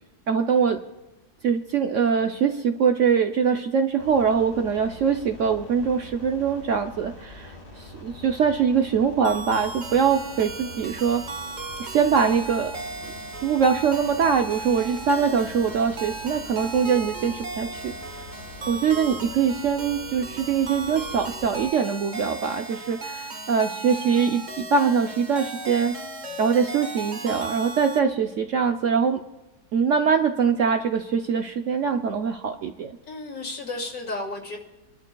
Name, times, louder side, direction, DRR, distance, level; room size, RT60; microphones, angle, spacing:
voice 1, 0.3-0.8 1.4-11.2 11.8-12.8 13.4-18.3 18.7-25.9 26.4-29.2 29.7-32.9, right 6 dB, 65° right, 6 dB, 0.8 m, -23 dB
sound 1, 4.0-21.7, left 2 dB, 45° left, 1.8 m, -44 dB
sound 2, 9.2-28.0, right 3 dB, 35° right, 0.9 m, -36 dB
voice 2, 33.1-34.6, left 2 dB, 65° left, -1 dB, 2.8 m, -33 dB
28.0 x 12.0 x 2.3 m, 1.0 s
omnidirectional pair, 1.7 m